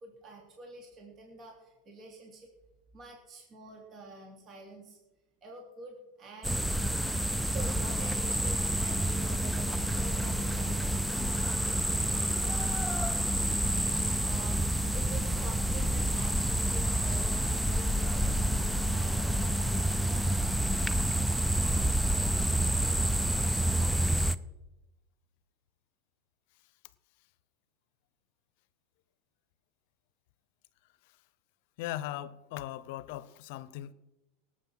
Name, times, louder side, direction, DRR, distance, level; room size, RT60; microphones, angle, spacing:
voice 1, 0.0-2.5 2.9-5.0 5.4-11.3 11.7-19.6, right 2 dB, 35° right, 3.1 m, -48 dB
sound 1, 6.4-24.4, right 1 dB, 5° right, 0.6 m, -28 dB
voice 2, 31.8-33.9, left 14 dB, 65° left, 0.8 m, -39 dB
18.0 x 8.1 x 5.7 m
hypercardioid pair, 100°, 0 cm